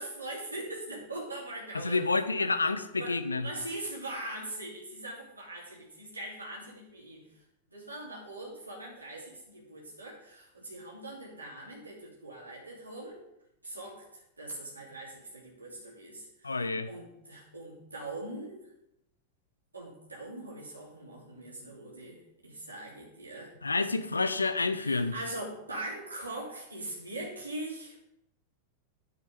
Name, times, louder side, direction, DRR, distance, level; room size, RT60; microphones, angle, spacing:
voice 1, 0.0-2.0 2.4-2.5 3.0-13.2 13.6-18.6 19.7-23.7 24.8-28.0, right 1 dB, 80° right, -4 dB, 3.0 m, -42 dB
voice 2, 1.7-3.5 16.4-16.9 23.6-25.1, left 3 dB, 80° left, 10 dB, 0.8 m, -29 dB
9.7 x 7.4 x 5.2 m, 0.81 s
figure-of-eight pair, 90°, 0 cm